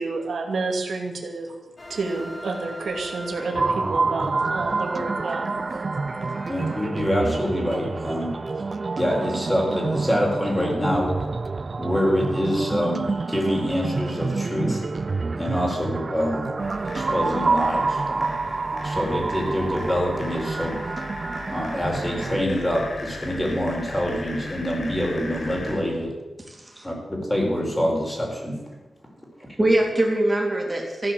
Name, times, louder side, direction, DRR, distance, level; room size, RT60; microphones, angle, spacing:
voice 1, 0.0-1.6 1.9-5.5, right 3 dB, 75° right, 2 dB, 2.5 m, -29 dB
sound 1, 1.8-6.8, left 1 dB, 35° left, 2.3 m, -41 dB
sound 2, 3.5-22.4, right 3 dB, 40° right, 0.6 m, -28 dB
voice 2, 6.5-8.3 9.0-11.1 11.8-14.8 15.3-16.5 16.8-18.3 18.8-20.8 21.5-26.1 26.8-28.5, equal, 15° left, -1 dB, 4.6 m, -25 dB
sound 3, 16.6-25.8, left 2 dB, 55° left, 4.6 m, -37 dB
voice 3, 26.5-26.9 29.6-31.1, right 1 dB, 15° right, 0 dB, 3.6 m, -22 dB
15.0 x 10.0 x 7.6 m, 1.1 s
wide cardioid pair, 120°, 0 cm